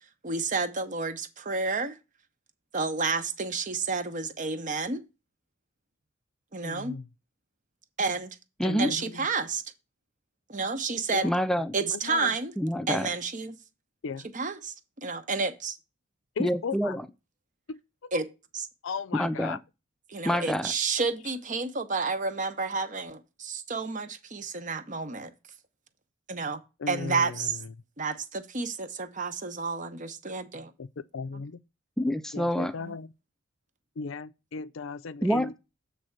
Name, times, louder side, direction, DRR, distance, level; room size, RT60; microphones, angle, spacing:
voice 1, 0.2-2.0 2.7-5.0 6.5-7.0 8.0-8.4 8.8-9.6 10.5-11.3 11.7-12.5 12.9-13.6 14.3-15.8 18.1-18.3 18.5-18.7 20.1-25.3 26.3-26.6 26.9-27.6 28.0-30.7 31.3-31.4 32.8-33.0, right 4 dB, 40° right, 0.9 m, -30 dB
voice 2, 6.6-7.1 8.6-9.3 11.1-11.3 11.8-12.3 14.0-14.3 16.4-17.0 17.7-18.1 18.8-19.6 26.8-27.6 30.8-30.9 31.1-31.6 32.3-33.1 34.0-35.5, left 5 dB, 70° left, 0.5 m, -36 dB
voice 3, 8.6-8.9 11.2-11.8 12.6-13.1 16.4-17.0 19.1-19.6 20.2-20.7 32.0-32.7 35.2-35.6, equal, ahead, 0.4 m, -27 dB
7.6 x 3.4 x 6.4 m
head